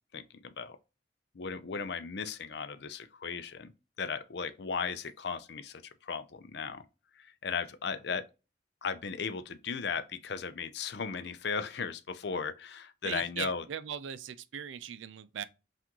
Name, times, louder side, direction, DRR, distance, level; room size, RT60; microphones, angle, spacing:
voice 1, 0.1-0.8 1.3-3.7 4.0-6.8 7.2-8.2 8.8-13.6, left 5 dB, 60° left, 0.5 m, -36 dB
voice 2, 13.0-15.4, right 8 dB, 80° right, 0.4 m, -39 dB
5.8 x 2.5 x 2.9 m
head